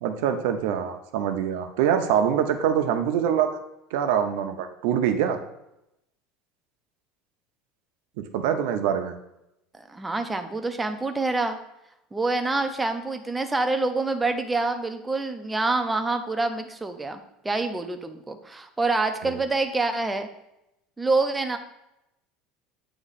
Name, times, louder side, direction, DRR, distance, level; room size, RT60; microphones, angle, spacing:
voice 1, 0.0-3.5 3.9-5.4 8.2-9.1 19.2-19.4, right 9 dB, 80° right, 6 dB, 0.7 m, -24 dB
voice 2, 9.7-11.6 12.1-20.3 21.0-21.6, right 3 dB, 10° right, 7 dB, 0.5 m, -26 dB
8.6 x 2.9 x 4.1 m, 0.86 s
cardioid pair, 150°, 0 cm